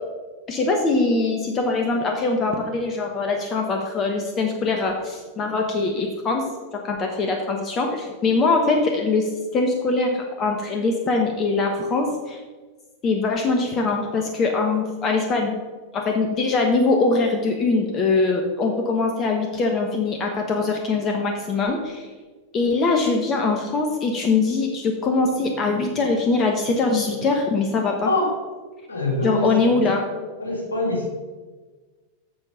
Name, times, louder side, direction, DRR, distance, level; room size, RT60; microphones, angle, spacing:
voice 1, 0.5-6.4 6.7-12.4 13.0-15.6 15.9-22.1 22.5-28.1 29.2-30.1, left 3 dB, 30° left, 2 dB, 1.2 m, -22 dB
voice 2, 28.9-30.1 30.4-31.1, left 1 dB, 75° left, -1 dB, 2.6 m, -25 dB
7.7 x 6.8 x 5.6 m, 1.3 s
figure-of-eight pair, 90°, 0 cm